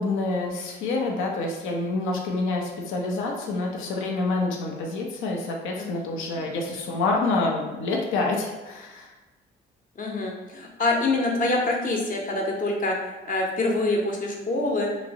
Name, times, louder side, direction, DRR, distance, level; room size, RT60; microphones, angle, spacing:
voice 1, 0.0-9.1, left 3 dB, 90° left, 0 dB, 0.6 m, -27 dB
voice 2, 10.0-13.0 13.3-14.9, left 2 dB, 45° left, 0 dB, 0.7 m, -25 dB
3.0 x 2.6 x 2.7 m, 1.2 s
cardioid pair, 90°, 20 cm